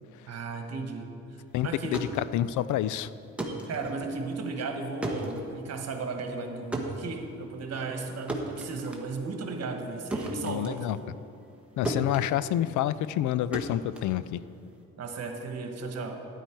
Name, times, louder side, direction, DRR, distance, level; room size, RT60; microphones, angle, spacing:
voice 1, 0.3-2.1 3.7-11.0 15.0-16.3, right 3 dB, 55° right, 4 dB, 1.5 m, -35 dB
voice 2, 1.5-2.1 2.3-3.1 10.4-11.0 11.8-14.4, left 12 dB, 75° left, 16 dB, 0.4 m, -28 dB
sound 1, 1.7-11.6 11.8-14.8, right 1 dB, 5° right, 1.5 m, -37 dB
12.0 x 10.0 x 4.6 m, 2.6 s
cardioid pair, 90°, 30 cm